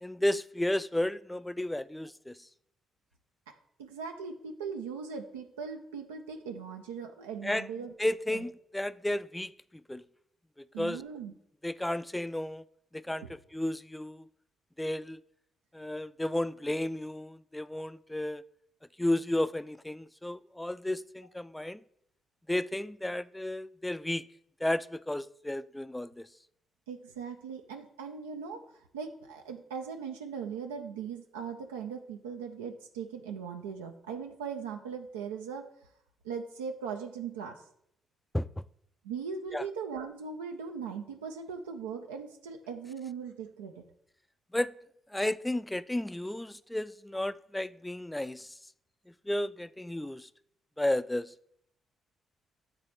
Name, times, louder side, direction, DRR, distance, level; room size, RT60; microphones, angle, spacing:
voice 1, 0.0-2.4 7.4-7.7 8.0-9.5 9.9-10.0 10.8-11.0 11.6-12.6 12.9-13.2 13.5-14.3 14.8-15.2 15.7-18.4 19.0-21.8 22.5-24.3 24.6-26.3 38.3-38.5 39.5-39.6 44.5-44.7 45.1-48.5 49.3-50.3 50.8-51.3, left 1 dB, 10° left, 0.3 m, -32 dB
voice 2, 3.5-7.9 8.3-8.4 10.7-11.3 13.2-13.3 26.9-28.6 28.9-35.7 36.2-37.6 39.0-43.8, right 6 dB, 85° right, 0.4 m, -39 dB
8.1 x 3.3 x 4.1 m
hypercardioid pair, 45°, 0 cm